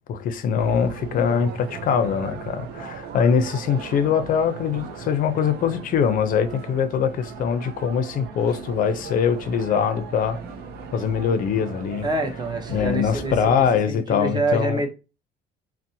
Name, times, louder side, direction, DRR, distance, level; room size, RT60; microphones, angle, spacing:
voice 1, 0.1-10.4 10.9-12.1 12.7-14.9, left 7 dB, 55° left, 0.5 m, -23 dB
sound 1, 0.6-13.8, right 5 dB, 75° right, 0.5 m, -37 dB
voice 2, 12.0-14.9, right 2 dB, 25° right, 0.6 m, -26 dB
2.6 x 2.0 x 2.6 m
cardioid pair, 110°, 17 cm